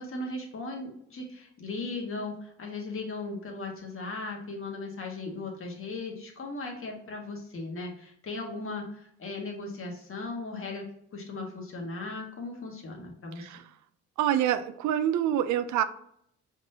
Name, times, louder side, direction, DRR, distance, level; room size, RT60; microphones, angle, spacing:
voice 1, 0.0-10.8 11.1-13.5, left 3 dB, 45° left, 1 dB, 1.5 m, -37 dB
voice 2, 14.2-15.8, right 11 dB, 75° right, 12 dB, 0.5 m, -26 dB
4.9 x 3.8 x 2.8 m, 0.71 s
cardioid pair, 90°, 30 cm